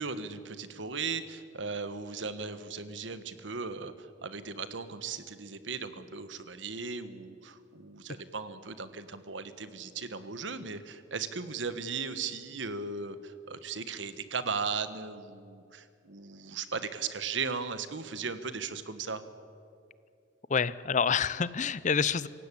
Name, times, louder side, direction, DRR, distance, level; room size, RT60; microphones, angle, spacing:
voice 1, 0.0-19.2, right 5 dB, 80° right, 12 dB, 1.3 m, -37 dB
voice 2, 20.5-22.3, left 6 dB, 40° left, 18 dB, 0.6 m, -27 dB
26.5 x 16.0 x 8.5 m, 2.5 s
head